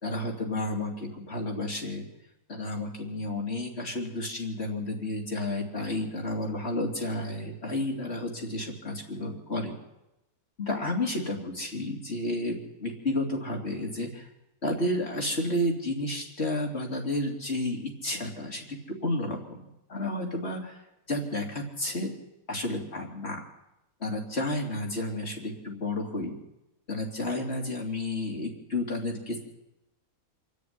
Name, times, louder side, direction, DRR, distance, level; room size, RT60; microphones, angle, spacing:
voice 1, 0.0-2.1 2.5-9.8 10.6-14.3 14.6-20.8 21.1-22.1 22.5-23.5 24.0-26.4 26.9-29.4, left 1 dB, 45° left, 1 dB, 3.5 m, -31 dB
26.5 x 10.5 x 9.7 m, 0.91 s
omnidirectional pair, 1.5 m